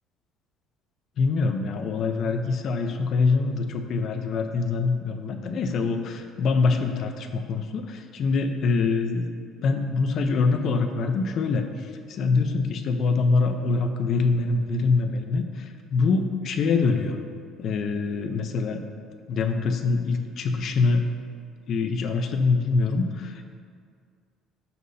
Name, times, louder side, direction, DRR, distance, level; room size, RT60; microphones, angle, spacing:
voice 1, 1.2-9.3 9.6-11.6 12.1-17.2 17.6-18.8 19.3-21.0 21.7-23.5, left 4 dB, 50° left, 6 dB, 0.7 m, -24 dB
14.5 x 6.0 x 2.8 m, 2.2 s
cardioid pair, 135°, 0 cm